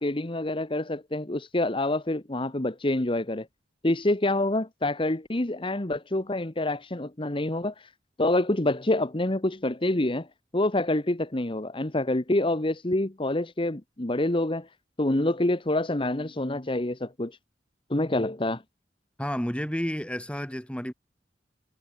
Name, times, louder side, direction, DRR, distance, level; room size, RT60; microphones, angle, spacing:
voice 1, 0.0-3.5 3.8-7.9 8.2-10.3 10.5-14.7 15.0-17.4 17.9-18.6, left 1 dB, 30° left, 1.3 m, -27 dB
voice 2, 19.2-20.9, equal, 5° left, 2.4 m, -31 dB
head